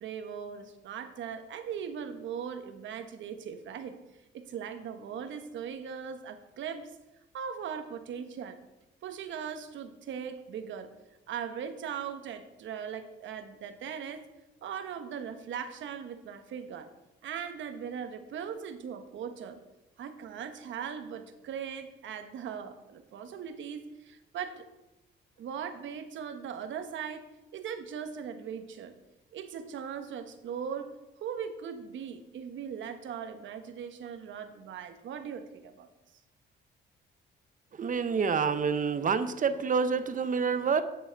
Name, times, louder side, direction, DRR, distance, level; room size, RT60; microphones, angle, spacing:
voice 1, 0.0-4.0 4.3-6.9 7.3-8.6 9.0-10.9 11.3-14.3 14.6-16.9 17.2-19.6 20.0-24.6 25.4-27.3 27.5-28.9 29.3-35.9, right 7 dB, 70° right, 1.0 m, -39 dB
voice 2, 37.8-40.8, right 5 dB, 40° right, 0.7 m, -27 dB
9.8 x 6.2 x 4.6 m
cardioid pair, 90°, 20 cm